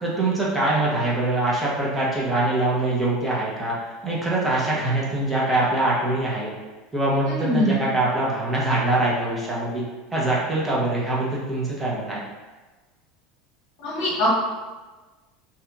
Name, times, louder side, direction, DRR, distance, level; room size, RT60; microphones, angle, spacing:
voice 1, 0.0-3.7 4.0-6.5 6.9-9.8 10.1-12.2, right 2 dB, 15° right, -6 dB, 0.7 m, -23 dB
voice 2, 7.3-7.8 13.8-14.3, left 1 dB, 65° left, -6 dB, 1.0 m, -23 dB
2.7 x 2.5 x 2.2 m, 1.3 s
supercardioid pair, 105°, 0 cm